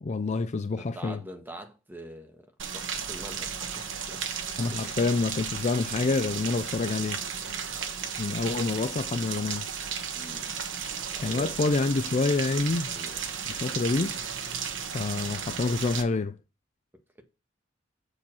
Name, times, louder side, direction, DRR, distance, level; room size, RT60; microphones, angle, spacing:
voice 1, 0.0-1.2 4.6-7.2 8.2-9.7 11.2-13.0 13.5-14.2 14.9-16.4, left 3 dB, 40° left, 0.4 m, -27 dB
voice 2, 0.8-4.2 4.7-5.0 7.4-7.8 10.1-10.6 11.1-11.5 12.8-13.2, equal, 10° right, 1.4 m, -45 dB
Rain, 2.6-16.0, right 7 dB, 80° right, 1.2 m, -34 dB
7.1 x 4.9 x 6.0 m
head